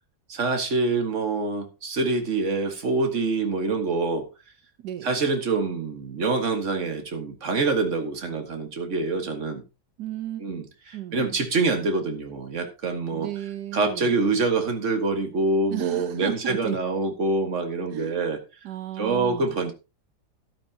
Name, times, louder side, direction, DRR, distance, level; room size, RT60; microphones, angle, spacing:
voice 1, 0.3-4.3 5.0-9.6 10.4-13.3 13.7-18.4 19.0-19.7, right 3 dB, 45° right, 2.0 m, -25 dB
voice 2, 4.8-5.1 10.0-10.4 10.9-11.4 13.1-14.1 15.7-16.8 17.9-18.2 18.6-19.6, right 12 dB, 85° right, 1.4 m, -34 dB
13.0 x 11.5 x 2.9 m
omnidirectional pair, 1.7 m